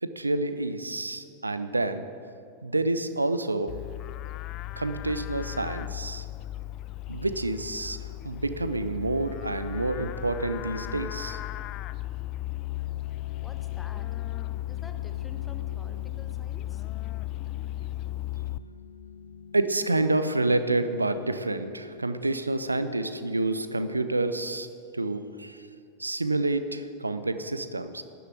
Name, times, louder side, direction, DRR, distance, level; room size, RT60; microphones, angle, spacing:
voice 1, 0.0-2.1 2.6-3.7 4.8-6.3 7.1-8.0 8.2-11.4 19.5-24.7 24.9-25.7 26.0-28.0, right 2 dB, 80° right, 11 dB, 0.6 m, -28 dB
Livestock farm animals working animals, 3.7-18.6, left 15 dB, 35° left, 0.4 m, -35 dB
sound 1, 12.5-25.2, left 2 dB, 75° left, 0.7 m, -48 dB
voice 2, 13.4-14.2 14.7-17.3, left 3 dB, 15° left, 7 dB, 1.1 m, -50 dB
12.5 x 6.9 x 8.0 m, 2.4 s
figure-of-eight pair, 90°, 0 cm